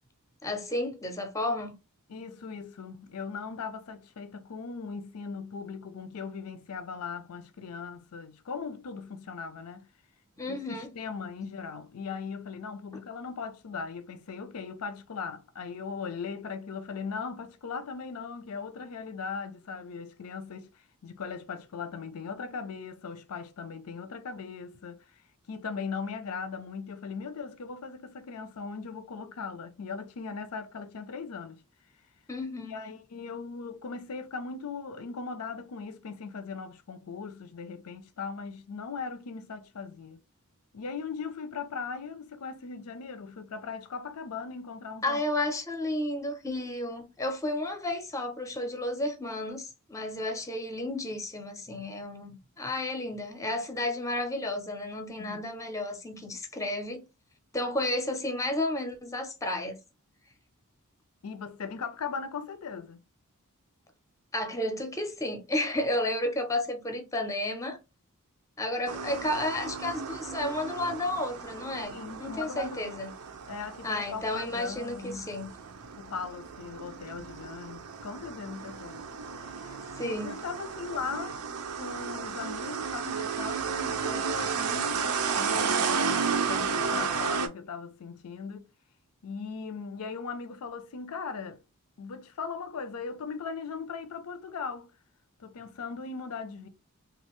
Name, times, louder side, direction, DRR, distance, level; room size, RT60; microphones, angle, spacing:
voice 1, 0.4-1.8 10.4-10.9 12.9-13.0 32.3-32.8 45.0-57.0 57.5-59.8 64.3-67.8 68.6-71.9 72.2-73.1 73.8-75.5 79.7-80.3, left 1 dB, 15° left, 0.6 m, -32 dB
voice 2, 2.1-9.9 10.5-25.2 25.5-31.6 32.7-40.2 40.7-45.2 55.2-55.4 61.2-63.0 71.9-73.0 73.5-75.3 76.0-79.0 79.4-79.8 80.0-81.4 81.8-88.7 89.2-91.6 92.0-94.9 95.4-96.7, left 5 dB, 75° left, 0.5 m, -39 dB
sound 1, 68.9-87.5, right 6 dB, 75° right, 0.5 m, -33 dB
3.2 x 2.4 x 3.0 m
head